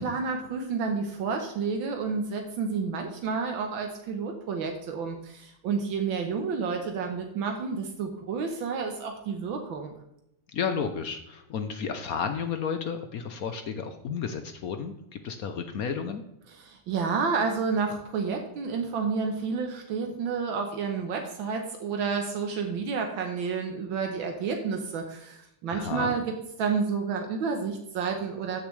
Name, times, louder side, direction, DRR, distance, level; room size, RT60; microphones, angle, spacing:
voice 1, 0.0-9.9 16.6-28.6, right 5 dB, 75° right, 4 dB, 1.8 m, -30 dB
voice 2, 10.5-16.2 25.7-26.1, left 6 dB, 65° left, 7 dB, 0.9 m, -32 dB
13.5 x 6.8 x 3.2 m, 0.81 s
omnidirectional pair, 2.2 m